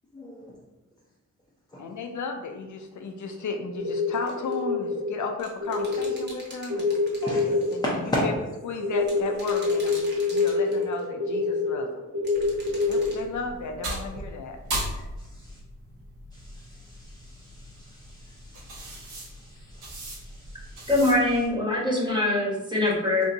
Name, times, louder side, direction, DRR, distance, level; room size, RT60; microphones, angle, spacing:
voice 1, 0.1-0.5 1.7-1.8 7.2-7.5 7.8-8.2 15.3-15.6 16.3-20.9, left 1 dB, 15° left, -5 dB, 0.6 m, -36 dB
voice 2, 1.8-6.9 7.3-8.3 8.6-12.0 12.9-14.6, left 4 dB, 70° left, 4 dB, 0.5 m, -35 dB
sound 1, 3.8-5.3 5.6-6.1 6.7-13.1 13.8-14.1, left 3 dB, 55° right, 1.3 m, -26 dB
sound 2, 4.1-4.6 5.4-7.9 9.0-11.0 12.2-13.2, right 1 dB, 35° right, 1.1 m, -44 dB
sound 3, 12.3-21.5, right 1 dB, 80° right, 1.4 m, -38 dB
voice 3, 20.9-23.2, left 2 dB, 15° right, -5 dB, 1.4 m, -23 dB
3.4 x 2.7 x 3.9 m, 1.0 s
wide cardioid pair, 110°, 31 cm